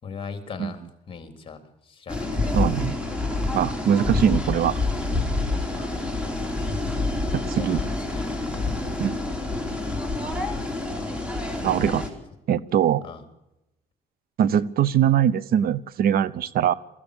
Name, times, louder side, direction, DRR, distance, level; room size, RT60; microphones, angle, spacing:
voice 1, 0.0-2.6 5.7-6.1 7.4-8.3 13.0-13.2, left 5 dB, 30° left, 7 dB, 3.6 m, -40 dB
sound 1, 2.1-12.1, left 2 dB, 5° right, 4.6 m, -27 dB
voice 2, 2.5-3.0 3.5-4.7 7.3-7.8 9.0-9.2 11.6-12.0 12.5-13.0 14.4-16.7, right 9 dB, 60° right, 18 dB, 1.0 m, -22 dB
22.5 x 15.5 x 8.6 m, 0.91 s
cardioid pair, 110°, 17 cm